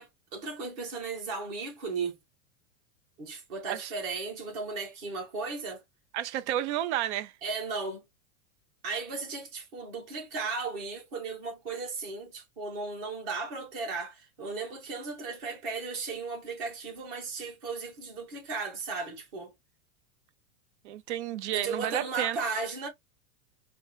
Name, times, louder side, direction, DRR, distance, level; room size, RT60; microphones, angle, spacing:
voice 1, 0.0-2.2 3.2-5.8 7.4-8.0 8.8-19.5 21.5-22.9, right 4 dB, 40° right, 1.8 m, -36 dB
voice 2, 6.1-7.3 20.8-22.4, right 12 dB, 55° right, 0.5 m, -31 dB
4.3 x 2.1 x 3.0 m
supercardioid pair, 170°, 42 cm